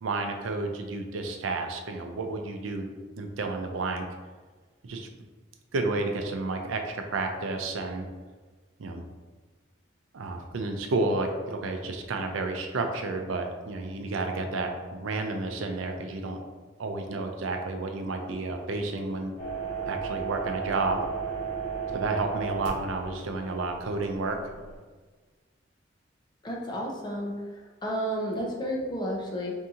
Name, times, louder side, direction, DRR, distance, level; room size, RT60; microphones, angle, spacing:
voice 1, 0.0-2.9 3.2-4.1 4.8-5.1 5.7-8.1 8.8-9.0 10.1-16.4 16.8-19.3 19.9-21.0 21.9-24.5, right 3 dB, 85° right, 4 dB, 0.5 m, -31 dB
sound 1, 19.4-24.8, right 6 dB, 45° left, 1.1 m, -35 dB
voice 2, 26.4-27.4 27.8-29.5, equal, 20° left, -1 dB, 0.5 m, -31 dB
2.8 x 2.7 x 3.6 m, 1.4 s
head